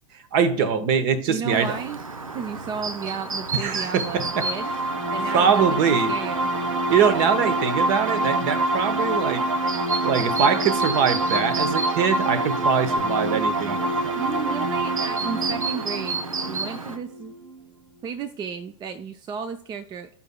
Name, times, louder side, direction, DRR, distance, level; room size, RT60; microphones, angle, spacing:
voice 1, 0.3-1.7 3.5-4.5 5.3-6.1 6.9-9.5 10.0-13.8, right 6 dB, 50° right, 1.1 m, -23 dB
voice 2, 1.3-2.0 2.3-4.7 5.1-6.5 14.1-17.3 18.0-20.1, right 6 dB, 25° right, 0.5 m, -33 dB
Chirp tweet, 1.5-17.0, right 4 dB, 90° right, 0.7 m, -33 dB
sound 1, 4.1-17.6, right 2 dB, 70° right, 1.2 m, -26 dB
16.0 x 5.6 x 2.2 m
figure-of-eight pair, 95°, 17 cm